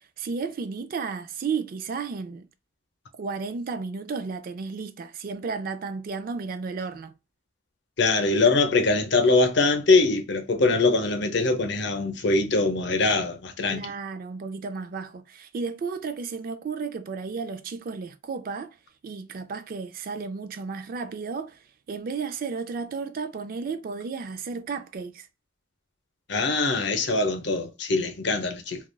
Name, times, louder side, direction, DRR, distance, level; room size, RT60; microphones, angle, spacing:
voice 1, 0.2-2.5 3.2-7.1 13.7-18.8 19.0-21.6 21.9-25.3, right 5 dB, 45° right, 0.3 m, -33 dB
voice 2, 8.0-13.9 26.3-28.8, left 3 dB, 60° left, 0.7 m, -23 dB
3.2 x 2.3 x 2.2 m
head